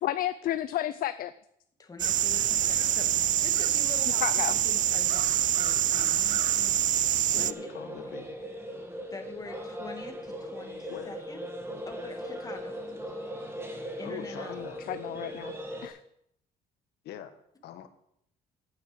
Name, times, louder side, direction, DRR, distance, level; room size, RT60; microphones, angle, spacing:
voice 1, 0.0-1.3 4.2-4.5 14.5-15.5 15.8-16.0, left 12 dB, 60° left, 13 dB, 0.5 m, -31 dB
voice 2, 1.8-6.8 7.3-7.7 9.1-11.4 11.9-12.7 14.0-14.6, left 3 dB, 20° left, 5 dB, 1.9 m, -45 dB
sound 1, 2.0-7.5, right 11 dB, 50° right, 0.5 m, -25 dB
voice 3, 7.3-8.3 10.9-11.1 14.0-14.8 17.0-17.9, left 10 dB, 80° left, 9 dB, 1.3 m, -43 dB
sound 2, 7.4-15.9, equal, 15° right, 2.2 m, -39 dB
9.0 x 9.0 x 7.6 m, 0.73 s
cardioid pair, 110°, 17 cm